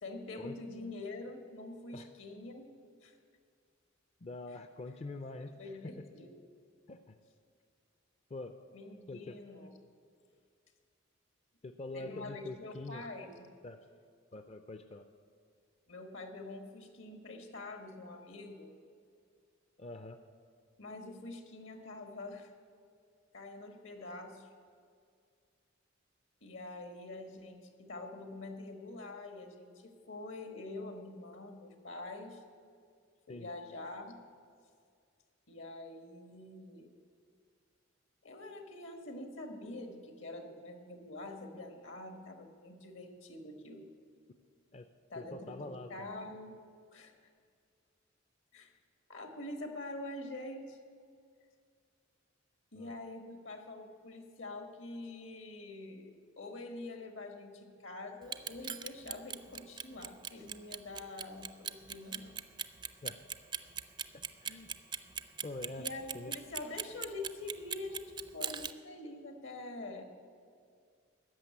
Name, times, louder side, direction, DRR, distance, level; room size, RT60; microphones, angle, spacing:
voice 1, 0.0-2.7 3.0-3.2 5.6-6.3 8.7-9.7 11.9-13.5 15.9-18.7 20.8-22.5 23.3-24.5 26.4-32.4 33.3-34.1 35.5-36.9 38.2-43.9 45.1-46.5 46.9-47.1 48.5-48.7 49.1-50.8 52.7-62.4 65.8-70.0, left 2 dB, 70° left, 5 dB, 1.5 m, -45 dB
voice 2, 4.2-5.6 5.8-6.0 6.9-7.2 8.3-8.6 9.1-9.4 11.6-13.0 13.6-13.8 14.3-15.1 19.8-20.2 33.3-33.5 44.7-44.9 45.2-46.1 52.7-53.0 63.0-63.2 64.4-64.7 65.4-65.9 66.1-66.3, left 2 dB, 30° left, 8 dB, 0.4 m, -44 dB
Clock, 58.2-68.7, right 7 dB, 25° right, 0.4 m, -39 dB
14.0 x 6.6 x 9.5 m, 2.2 s
head